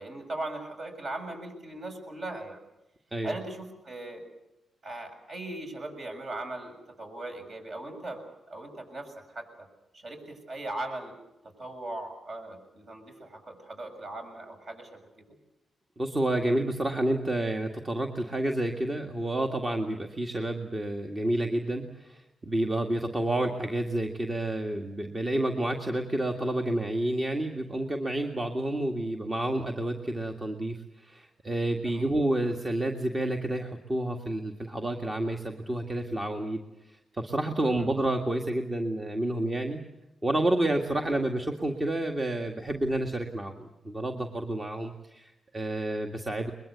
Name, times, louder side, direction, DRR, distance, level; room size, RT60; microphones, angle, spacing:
voice 1, 0.0-2.6 3.2-4.2 4.8-9.7 9.9-11.2 11.4-15.3 31.8-32.2 37.8-37.9 40.8-41.1, right 2 dB, 55° right, 3 dB, 7.1 m, -39 dB
voice 2, 16.0-36.6 37.2-39.8 40.2-46.5, right 1 dB, 25° right, 3 dB, 1.9 m, -29 dB
22.5 x 21.5 x 8.1 m, 0.94 s
cardioid pair, 75°, 0 cm